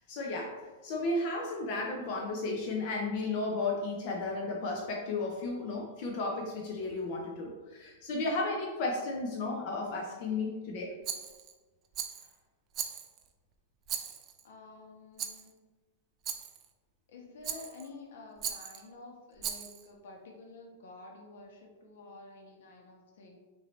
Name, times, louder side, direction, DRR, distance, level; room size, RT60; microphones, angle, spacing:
voice 1, 0.0-10.9, left 2 dB, 35° left, 0 dB, 0.6 m, -34 dB
voice 2, 10.1-10.5 14.4-15.5 17.1-23.4, left 3 dB, 65° left, 0 dB, 1.1 m, -50 dB
Rattle, 11.0-11.5 11.9-12.3 12.7-13.3 13.9-14.4 15.2-15.5 16.2-16.6 17.4-17.9 18.4-18.8 19.4-19.9, right 8 dB, 20° right, 0.3 m, -38 dB
6.1 x 2.7 x 3.1 m, 1.3 s
supercardioid pair, 180°, 0 cm